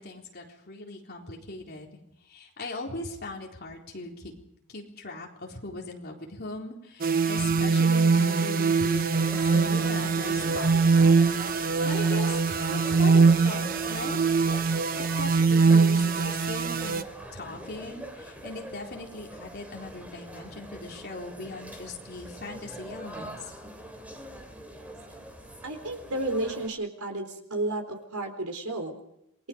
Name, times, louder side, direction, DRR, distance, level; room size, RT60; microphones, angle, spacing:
voice 1, 0.0-1.9 2.3-4.3 4.6-14.2 14.9-17.1 17.3-23.5, left 2 dB, 45° left, 0 dB, 4.0 m, -39 dB
sound 1, 7.0-17.0, right 4 dB, 40° right, 0.9 m, -22 dB
sound 2, 9.1-26.7, equal, 5° right, 2.8 m, -43 dB
voice 2, 24.7-25.3 25.6-29.0, right 2 dB, 85° right, 5 dB, 3.9 m, -33 dB
27.5 x 21.0 x 5.2 m, 0.79 s
head